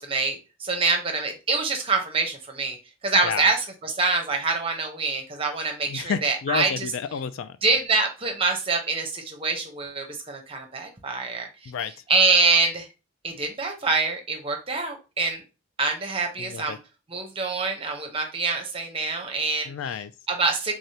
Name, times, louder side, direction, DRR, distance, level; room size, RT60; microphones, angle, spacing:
voice 1, 0.0-2.8 3.0-6.9 7.6-11.7 12.1-12.9 13.2-15.4 15.8-16.8 17.1-19.7 20.3-20.7, right 3 dB, 25° right, 0.7 m, -25 dB
voice 2, 5.9-7.6 11.7-11.9 16.4-16.8 19.7-20.1, left 7 dB, 65° left, 0.3 m, -30 dB
3.7 x 3.3 x 2.7 m
head